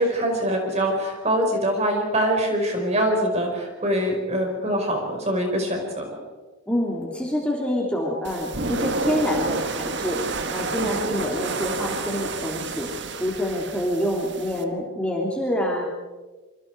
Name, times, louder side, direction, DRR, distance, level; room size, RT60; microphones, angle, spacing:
voice 1, 0.0-6.1 10.7-10.9, right 1 dB, 30° right, 2 dB, 5.2 m, -24 dB
voice 2, 6.7-15.9, equal, 5° left, -2 dB, 3.1 m, -27 dB
sound 1, 8.2-14.6, right 3 dB, 55° right, 1.5 m, -30 dB
26.0 x 25.5 x 4.8 m, 1.3 s
head